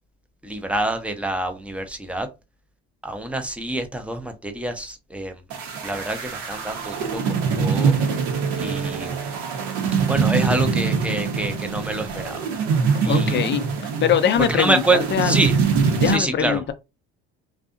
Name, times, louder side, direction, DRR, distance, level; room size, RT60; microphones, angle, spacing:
voice 1, 0.4-2.3 3.0-5.4 5.8-7.9 8.5-9.2 10.1-12.4 13.0-13.4 14.5-15.5 16.0-16.6, right 2 dB, 5° right, 0.7 m, -26 dB
sound 1, 5.5-16.2, right 5 dB, 70° right, 1.0 m, -23 dB
voice 2, 13.1-13.6 14.0-14.8 15.1-15.4 16.0-16.7, left 9 dB, 35° left, 0.6 m, -21 dB
2.6 x 2.4 x 2.4 m
supercardioid pair, 80°, 30 cm